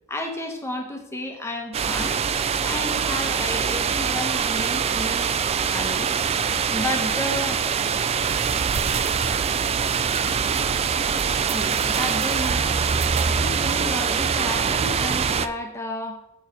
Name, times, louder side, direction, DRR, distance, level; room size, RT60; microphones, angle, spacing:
voice 1, 0.1-2.2 2.6-5.3 5.7-6.1 6.7-7.6 11.5-12.8 13.3-16.2, left 1 dB, 10° left, 2 dB, 1.0 m, -32 dB
sound 1, 1.7-15.5, right 6 dB, 30° right, 0.3 m, -23 dB
7.1 x 4.7 x 6.3 m, 0.86 s
head